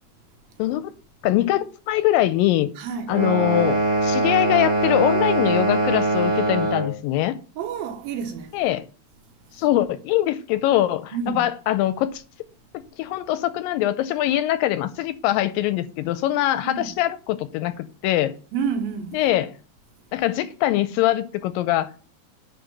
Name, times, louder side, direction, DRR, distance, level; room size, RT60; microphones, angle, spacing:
voice 1, 0.6-0.9 1.2-2.7 3.1-7.4 8.5-8.9 9.6-12.2 13.0-18.3 19.1-19.5 20.1-22.0, left 14 dB, 80° left, 2.1 m, -23 dB
voice 2, 2.8-3.1 7.6-8.5 11.1-11.5 16.6-16.9 18.5-19.1, right 6 dB, 75° right, 3.0 m, -29 dB
sound 1, 3.1-7.0, right 2 dB, 30° right, 0.7 m, -22 dB
10.5 x 3.8 x 7.2 m
omnidirectional pair, 4.2 m